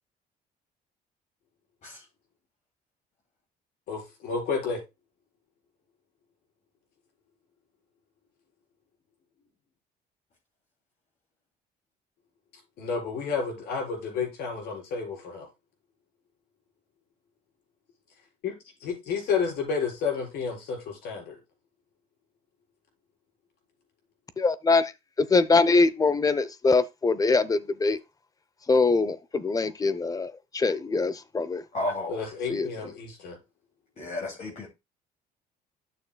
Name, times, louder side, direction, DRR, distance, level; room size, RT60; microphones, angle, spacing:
voice 1, 3.9-4.8 12.8-15.5 18.4-18.5 18.8-21.4 32.1-33.4, left 5 dB, 70° left, 4.2 m, -31 dB
voice 2, 24.4-24.9 25.3-28.0 28.7-31.6 32.5-32.7, left 3 dB, 20° left, 0.6 m, -23 dB
voice 3, 31.7-32.2 34.0-34.7, left 2 dB, 45° left, 2.7 m, -32 dB
12.0 x 6.5 x 2.2 m
cardioid pair, 110°, 17 cm